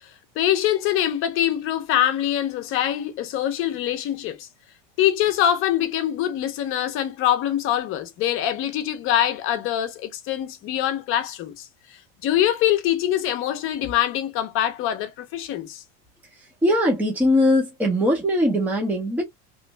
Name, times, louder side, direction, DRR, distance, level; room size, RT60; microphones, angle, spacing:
voice 1, 0.4-4.5 5.0-11.7 12.2-15.8, left 11 dB, 40° left, 0.8 m, -24 dB
voice 2, 16.3-19.2, left 1 dB, 5° right, 0.7 m, -21 dB
3.1 x 2.5 x 3.3 m
supercardioid pair, 160°, 34 cm